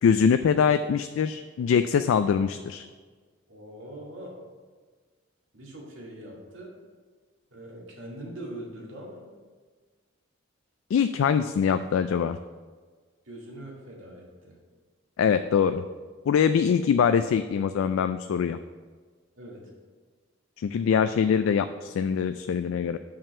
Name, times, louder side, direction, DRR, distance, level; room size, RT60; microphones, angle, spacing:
voice 1, 0.0-2.8 10.9-12.4 15.2-15.8 16.3-18.6 20.6-23.0, left 7 dB, 85° left, 10 dB, 0.3 m, -23 dB
voice 2, 3.5-4.4 5.5-6.8 7.5-9.3 13.2-14.6 19.4-19.7, right 1 dB, 75° right, -2 dB, 2.0 m, -42 dB
5.7 x 5.4 x 6.7 m, 1.5 s
head